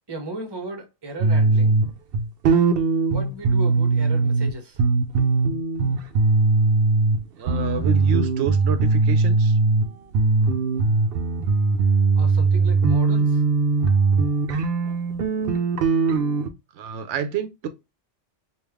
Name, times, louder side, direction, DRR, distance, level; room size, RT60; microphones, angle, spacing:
voice 1, 0.1-1.8 3.1-4.8 12.2-13.4, right 2 dB, 25° right, 0.7 m, -35 dB
sound 1, 1.2-4.5 4.8-7.2 7.5-9.8 10.1-16.5, right 3 dB, 60° right, 0.7 m, -20 dB
voice 2, 7.4-9.6 16.7-17.7, right 6 dB, 85° right, 0.9 m, -28 dB
3.3 x 2.4 x 3.4 m
omnidirectional pair, 1.2 m